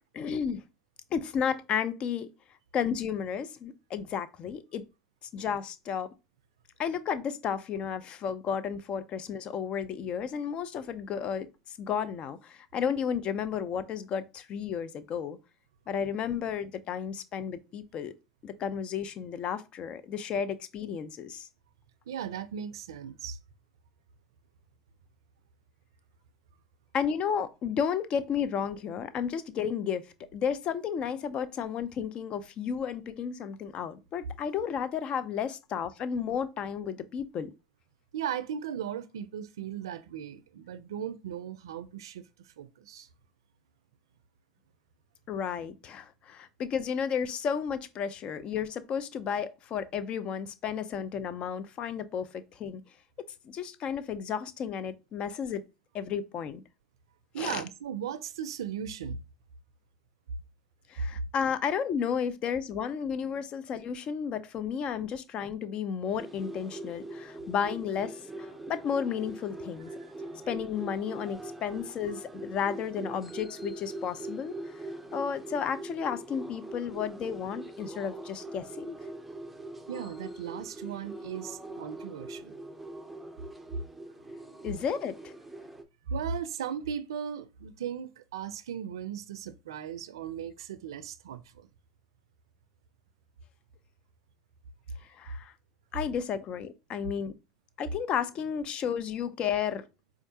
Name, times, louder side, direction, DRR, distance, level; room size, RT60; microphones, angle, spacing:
voice 1, 0.1-0.6 1.1-2.3 2.7-4.8 5.3-6.1 6.8-15.4 15.9-18.1 18.4-21.5 26.9-30.1 30.3-37.5 45.3-52.8 53.4-55.6 55.9-56.6 57.4-57.6 60.9-69.9 70.3-74.6 75.1-79.0 84.6-85.3 95.1-95.5 95.9-97.3 97.8-99.8, left 7 dB, 45° left, 0.5 m, -33 dB
voice 2, 22.1-23.4 38.1-43.1 57.3-59.2 79.9-82.6 86.1-91.7, right 8 dB, 90° right, 0.3 m, -37 dB
sound 1, 66.2-85.8, right 2 dB, 5° right, 0.6 m, -42 dB
4.4 x 2.4 x 2.7 m
hypercardioid pair, 90°, 2 cm